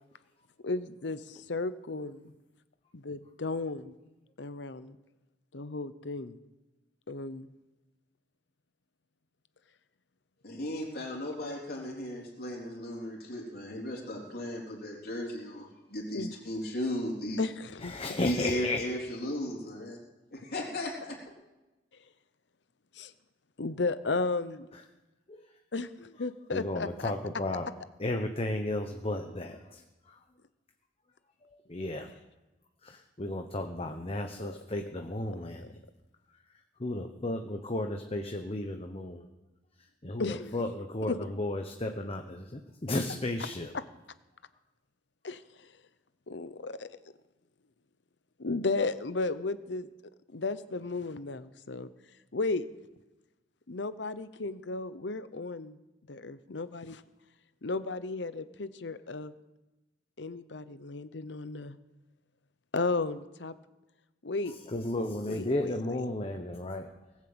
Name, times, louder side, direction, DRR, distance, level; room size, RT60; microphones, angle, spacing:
voice 1, 0.6-2.3 2.9-3.9 4.4-5.0 5.5-6.4 7.1-7.5 16.1-16.3 17.4-18.2 22.9-23.1 23.6-24.7 25.7-27.1 34.4-34.6 35.6-35.7 40.2-40.5 41.1-41.2 45.2-45.7 46.3-46.9 48.4-49.9 50.3-51.9 52.3-52.7 53.7-55.8 56.1-57.0 57.6-59.3 60.2-61.8 62.7-63.5 64.2-64.5 65.3-66.0, left 3 dB, 75° left, 13 dB, 0.8 m, -34 dB
voice 2, 10.4-17.4 18.2-20.0 20.3-21.2, left 1 dB, 60° left, -2 dB, 3.6 m, -35 dB
voice 3, 17.8-18.8 25.3-25.4 26.5-27.7 28.0-29.8 31.7-32.1 32.8-35.7 36.8-39.2 40.0-43.7 64.7-66.9, left 1 dB, 35° left, 4 dB, 0.9 m, -34 dB
19.5 x 7.5 x 7.9 m, 1.1 s
head